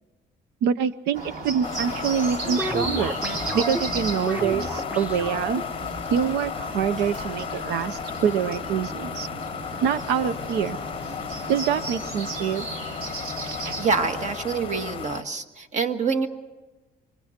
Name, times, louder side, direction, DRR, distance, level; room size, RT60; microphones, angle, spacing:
voice 1, 0.6-3.2 3.5-5.6 6.1-9.3 9.8-10.8 11.5-12.7 13.4-13.7, right 8 dB, 90° right, 15 dB, 0.8 m, -25 dB
Bird, 1.1-14.3, right 3 dB, 60° right, 3.2 m, -35 dB
sound 1, 1.6-15.2, left 8 dB, 30° left, 0.7 m, -34 dB
sound 2, 2.4-6.0, right 1 dB, 5° right, 1.0 m, -32 dB
voice 2, 13.8-16.3, right 5 dB, 45° right, 7 dB, 1.7 m, -26 dB
27.5 x 24.5 x 4.4 m, 1.2 s
cardioid pair, 110°, 17 cm